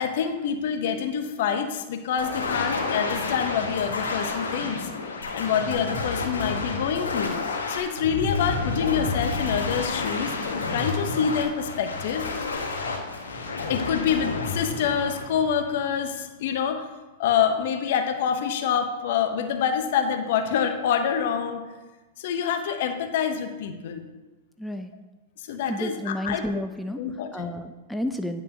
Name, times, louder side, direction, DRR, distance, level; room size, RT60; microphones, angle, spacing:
voice 1, 0.0-4.9 5.3-10.4 10.7-12.3 13.7-16.8 17.2-21.7 22.2-24.0 25.4-26.4 27.0-27.6, left 7 dB, 60° left, 7 dB, 0.7 m, -26 dB
sound 1, 2.2-16.1, left 3 dB, 85° left, 1.0 m, -30 dB
voice 2, 24.6-24.9 25.7-27.0 27.3-28.4, left 1 dB, 5° left, 6 dB, 0.4 m, -31 dB
9.4 x 5.3 x 2.7 m, 1.2 s
hypercardioid pair, 105°, 0 cm